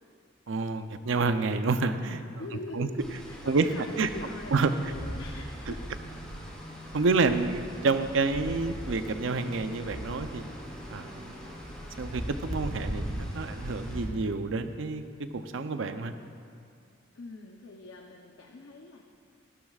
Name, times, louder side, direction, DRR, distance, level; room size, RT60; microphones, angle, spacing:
voice 1, 0.5-2.2 2.7-2.9 3.4-4.1 4.5-4.9 6.9-10.6 10.9-11.3 12.0-16.1, right 3 dB, 65° right, 9 dB, 0.6 m, -28 dB
voice 2, 2.4-5.9 17.1-19.0, left 2 dB, 75° left, 1 dB, 0.7 m, -43 dB
sound 1, 3.0-14.1, equal, 5° left, 2.9 m, -39 dB
15.0 x 12.5 x 2.4 m, 2.3 s
head